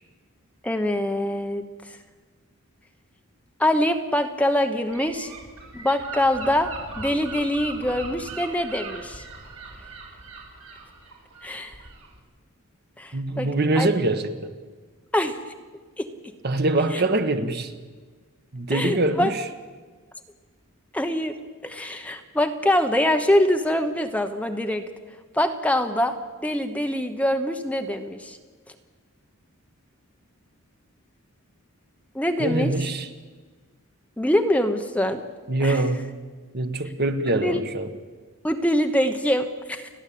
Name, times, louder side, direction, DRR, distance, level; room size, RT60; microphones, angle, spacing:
voice 1, 0.6-2.0 3.6-5.3 5.7-6.7 7.0-9.2 11.4-11.8 13.0-13.5 13.8-13.9 15.1-15.4 16.0-16.1 18.7-19.3 20.9-21.4 21.6-24.8 25.3-26.1 26.4-28.4 32.1-32.7 34.2-35.2 35.6-35.8 37.4-37.6 38.4-39.9, left 1 dB, 5° left, 5 dB, 1.0 m, -24 dB
Gull seagull / Wind, 4.9-12.2, right 3 dB, 80° right, 4.3 m, -40 dB
voice 2, 13.1-14.5 16.4-17.7 18.5-19.4 32.4-33.1 35.5-36.1 36.5-37.9, right 2 dB, 45° right, 8 dB, 1.3 m, -24 dB
30.0 x 10.5 x 8.6 m, 1.4 s
head